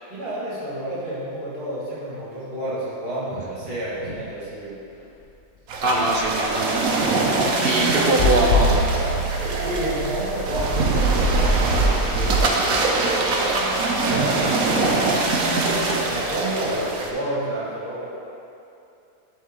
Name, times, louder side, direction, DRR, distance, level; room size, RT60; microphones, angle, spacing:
voice 1, 0.1-4.8 5.7-6.0 9.6-12.4 12.9-15.2 16.0-18.1, equal, 40° right, -9 dB, 2.1 m, -30 dB
sound 1, 5.7-17.1, right 3 dB, 70° right, 1.2 m, -22 dB
voice 2, 5.8-7.0 7.3-8.8, right 2 dB, 55° right, -1 dB, 0.6 m, -23 dB
sound 2, 8.2-12.7 14.5-14.6, left 1 dB, 70° left, 0.5 m, -25 dB
11.0 x 4.3 x 3.7 m, 2.7 s
omnidirectional pair, 1.5 m